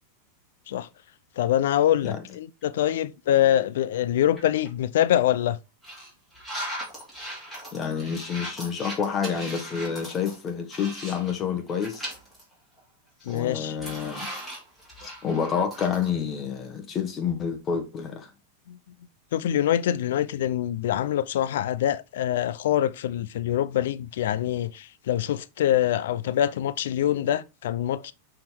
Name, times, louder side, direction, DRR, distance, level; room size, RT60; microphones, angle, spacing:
voice 1, 1.4-5.6 13.3-13.8 18.7-18.8 19.3-28.1, left 11 dB, 75° left, 0.5 m, -24 dB
sound 1, 4.4-4.7 5.2-5.3 5.8-11.4 11.7-12.4 12.8-12.9 13.2-16.1, equal, ahead, 2.7 m, -38 dB
voice 2, 7.7-12.1 13.3-14.3 15.0-18.3, left 7 dB, 25° left, 1.4 m, -29 dB
6.2 x 3.9 x 4.4 m
supercardioid pair, 155°, 0 cm